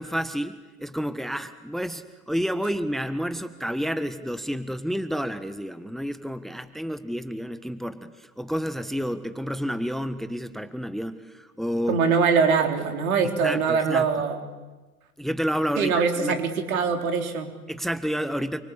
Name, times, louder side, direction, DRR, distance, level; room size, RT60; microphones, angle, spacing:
voice 1, 0.0-12.0 13.4-14.1 15.2-16.4 17.7-18.6, equal, ahead, 11 dB, 1.5 m, -30 dB
voice 2, 11.9-14.4 15.8-17.5, right 5 dB, 70° right, 5 dB, 4.1 m, -23 dB
29.5 x 24.0 x 8.5 m, 1.2 s
hypercardioid pair, 85°, 43 cm